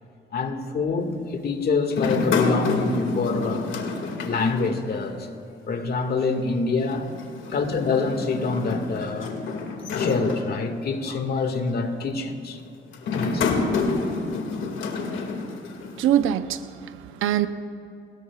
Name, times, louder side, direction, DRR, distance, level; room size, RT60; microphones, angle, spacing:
voice 1, 0.3-3.7 4.2-5.3 5.7-7.1 7.5-9.4 10.0-12.6 13.1-13.9, left 4 dB, 50° left, 2.0 m, -26 dB
sound 1, 1.9-5.3 5.6-5.7 6.8-11.0 11.7-12.0 12.9-16.2, left 4 dB, 75° left, 2.2 m, -28 dB
voice 2, 16.0-17.5, right 11 dB, 90° right, 0.8 m, -23 dB
28.5 x 20.5 x 2.4 m
cardioid pair, 90°, 20 cm